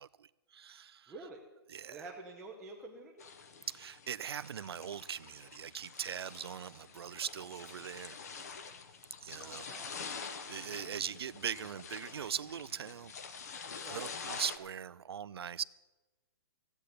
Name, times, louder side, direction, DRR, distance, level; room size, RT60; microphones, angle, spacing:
voice 1, 0.0-1.1 1.7-2.1 3.7-8.2 9.2-9.7 10.2-13.1 13.8-15.6, right 8 dB, 70° right, 18 dB, 0.5 m, -41 dB
voice 2, 1.1-1.4 1.9-3.1 9.3-10.0 13.8-14.1, right 3 dB, 5° right, -4 dB, 0.6 m, -48 dB
sound 1, 3.2-14.6, left 5 dB, 40° left, 0.9 m, -47 dB
15.5 x 8.2 x 8.5 m, 1.2 s
hypercardioid pair, 180°, 14 cm